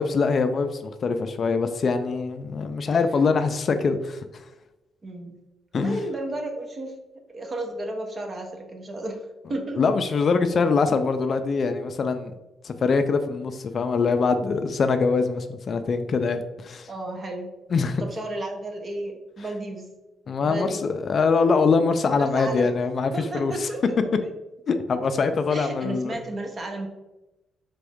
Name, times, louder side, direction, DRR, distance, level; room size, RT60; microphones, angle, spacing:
voice 1, 0.0-4.4 5.7-6.0 9.8-12.3 12.6-16.9 17.7-18.0 20.3-23.7 24.7-26.1, left 4 dB, 50° left, 8 dB, 0.4 m, -23 dB
voice 2, 5.0-5.4 5.7-7.0 7.3-9.2 9.5-9.8 16.9-17.5 18.0-19.9 20.4-20.8 22.1-22.7 23.1-23.8 25.5-26.9, right 1 dB, 35° right, 3 dB, 0.9 m, -33 dB
4.1 x 3.5 x 3.5 m, 1.0 s
cardioid pair, 90°, 0 cm